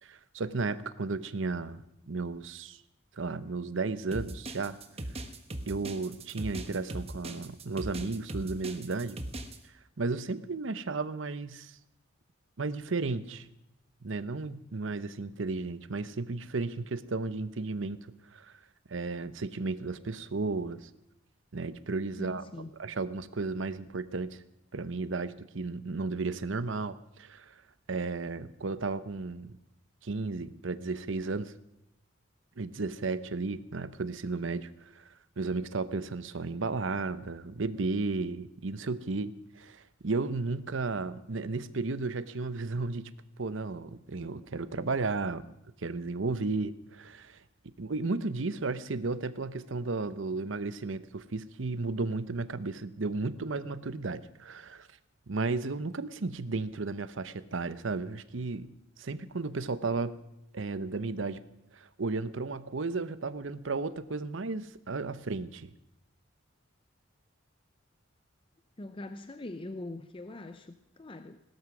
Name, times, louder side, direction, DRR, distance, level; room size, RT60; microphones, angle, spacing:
voice 1, 0.0-2.8 3.1-4.8 5.7-9.2 10.0-11.7 12.6-13.5 14.0-18.6 18.9-20.9 21.5-22.4 22.8-24.4 24.7-27.5 27.9-29.5 30.0-31.5 32.6-34.7 34.9-35.0 35.4-43.1 43.4-45.4 45.8-47.4 47.8-54.9 55.3-58.7 59.0-60.1 60.5-61.5 61.7-65.7, right 3 dB, 70° right, 14 dB, 0.8 m, -34 dB
sound 1, 4.1-9.6, right 1 dB, 30° right, 1.2 m, -39 dB
voice 2, 22.2-22.7 68.8-71.4, left 2 dB, 25° left, 9 dB, 0.6 m, -42 dB
18.0 x 12.5 x 6.1 m, 0.87 s
head